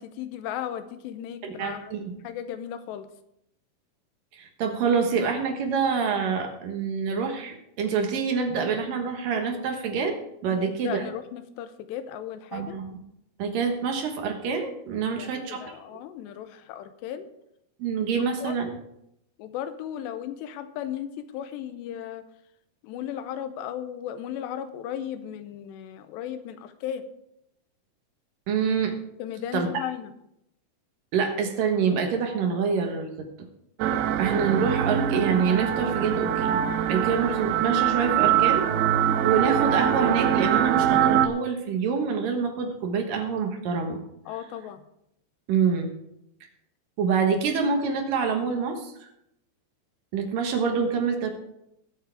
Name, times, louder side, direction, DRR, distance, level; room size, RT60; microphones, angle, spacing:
voice 1, 0.0-1.9 2.2-3.1 10.5-12.8 15.2-17.3 18.4-18.5 19.4-22.2 22.8-27.0 29.2-30.1 44.3-44.8, left 10 dB, 85° left, 10 dB, 2.9 m, -36 dB
voice 2, 1.4-2.0 4.3-10.2 10.4-11.1 12.5-12.9 13.4-15.7 17.8-18.7 28.5-28.9 29.5-29.7 31.1-33.3 34.2-36.6 36.9-38.7 39.2-44.0 45.5-45.9 47.0-49.1 50.1-51.3, right 6 dB, 65° right, 4 dB, 2.7 m, -26 dB
sound 1, 33.8-41.3, right 10 dB, 80° right, 2.4 m, -23 dB
21.0 x 7.5 x 3.5 m, 0.79 s
omnidirectional pair, 4.9 m